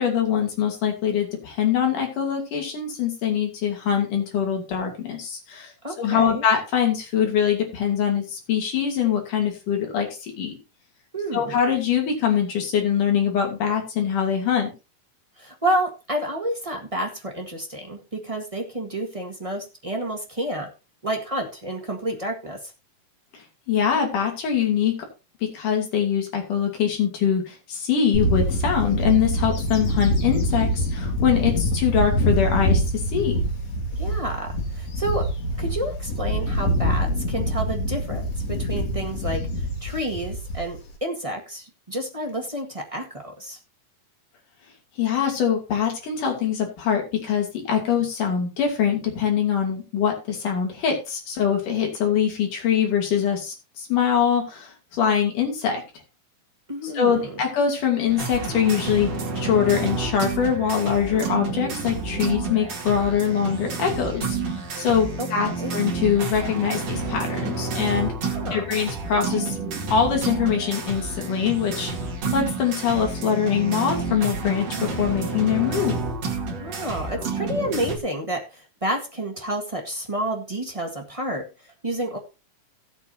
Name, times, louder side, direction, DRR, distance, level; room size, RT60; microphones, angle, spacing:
voice 1, 0.0-5.7 6.0-10.5 11.3-14.7 23.7-24.9 25.5-32.8 33.1-33.4 45.0-55.8 56.8-59.1 59.4-68.1 68.5-69.6 69.9-71.9 72.3-76.0, left 8 dB, 70° left, 2 dB, 4.2 m, -23 dB
voice 2, 5.8-6.5 11.1-11.6 15.4-20.7 21.0-22.6 33.9-35.3 35.6-39.5 39.8-43.6 56.7-57.3 65.2-65.3 65.6-65.7 68.3-68.6 76.5-82.2, right 1 dB, 25° right, 1 dB, 0.7 m, -30 dB
Bird / Wind, 28.1-40.9, equal, 50° left, 3.5 m, -25 dB
sound 1, 58.1-78.0, right 4 dB, 50° right, 3.2 m, -30 dB
17.5 x 8.2 x 2.8 m, 0.29 s
omnidirectional pair, 3.9 m